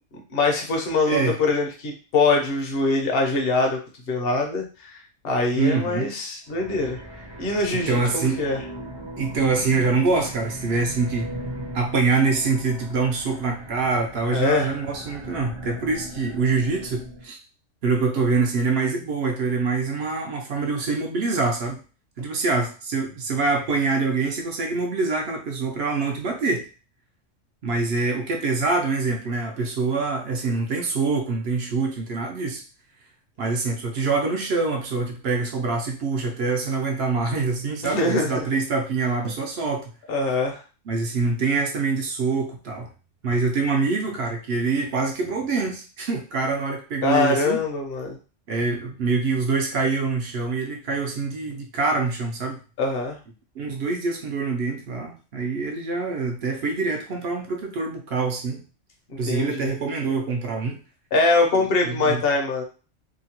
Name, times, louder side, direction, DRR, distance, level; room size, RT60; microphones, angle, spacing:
voice 1, 0.3-3.8 4.1-7.0 7.4-8.6 14.3-14.7 37.8-38.4 40.1-40.6 47.0-48.2 52.8-53.2 59.1-59.7 61.1-62.6, left 3 dB, 60° left, 1 dB, 0.9 m, -23 dB
voice 2, 1.1-1.4 5.6-6.1 7.9-8.4 9.2-11.3 11.7-17.4 17.8-21.8 22.2-26.7 27.6-32.6 33.4-39.9 40.9-42.9 43.2-47.6 48.5-52.6 53.6-58.6 59.2-60.8 61.5-62.2, right 4 dB, 65° right, 2 dB, 0.8 m, -25 dB
sound 1, 6.5-17.2, equal, 30° right, 0.5 m, -38 dB
2.8 x 2.2 x 2.8 m, 0.35 s
omnidirectional pair, 1.2 m